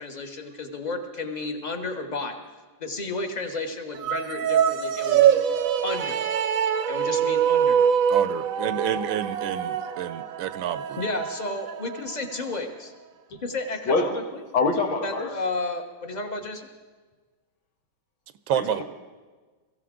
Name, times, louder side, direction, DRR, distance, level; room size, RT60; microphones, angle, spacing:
voice 1, 0.0-2.4 2.8-5.4 5.8-6.2 6.9-7.8 11.0-12.9 13.4-14.4 15.0-16.7, left 3 dB, 30° left, 5 dB, 1.0 m, -32 dB
sound 1, 4.0-12.5, right 8 dB, 60° right, 0.9 m, -24 dB
voice 2, 8.1-11.0 18.5-18.8, right 11 dB, 80° right, 13 dB, 1.4 m, -29 dB
voice 3, 14.5-15.3 18.5-18.8, left 3 dB, 80° left, 3 dB, 2.3 m, -24 dB
22.5 x 15.0 x 3.8 m, 1.4 s
omnidirectional pair, 2.2 m